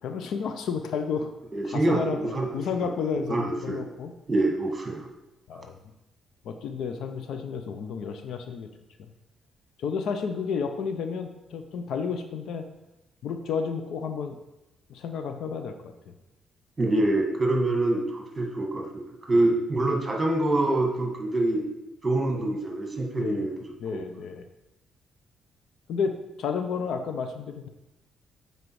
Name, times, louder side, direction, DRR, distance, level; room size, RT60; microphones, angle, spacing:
voice 1, 0.0-1.3 1.6-4.1 5.5-5.7 6.4-8.7 9.8-12.7 13.2-14.4 14.9-16.1 19.3-19.5 23.2-23.4 23.8-24.5 25.9-27.7, left 6 dB, 75° left, 7 dB, 0.7 m, -31 dB
voice 2, 1.5-2.9 3.2-3.8 4.3-5.0 16.8-21.7 22.0-23.5 23.9-24.0, right 2 dB, 25° right, 1 dB, 1.9 m, -26 dB
7.7 x 4.6 x 4.8 m, 0.97 s
cardioid pair, 90°, 0 cm